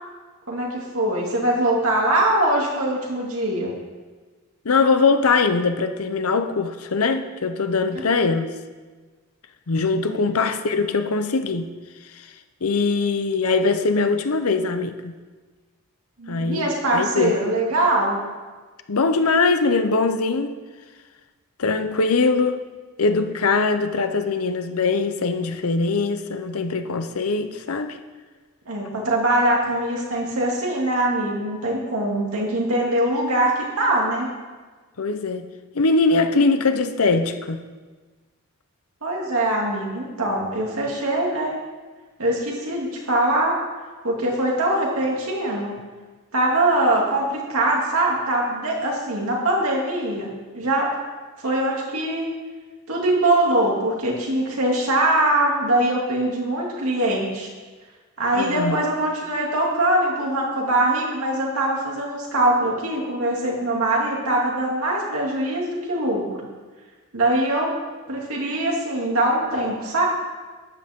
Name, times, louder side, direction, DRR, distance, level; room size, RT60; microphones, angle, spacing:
voice 1, 0.5-3.7 10.1-10.3 16.2-18.2 28.7-34.3 39.0-41.6 42.2-43.6 44.0-45.8 46.3-50.9 51.4-52.3 52.9-57.5 58.2-66.2 67.1-67.7 68.1-70.1, right 1 dB, 75° right, -2 dB, 2.6 m, -22 dB
voice 2, 4.6-8.5 9.7-11.7 12.6-15.2 16.3-17.4 18.9-20.6 21.6-22.6 23.0-28.0 35.0-35.5 35.7-37.6 58.3-58.8, left 4 dB, 75° left, 8 dB, 0.8 m, -21 dB
13.0 x 9.3 x 3.7 m, 1.4 s
head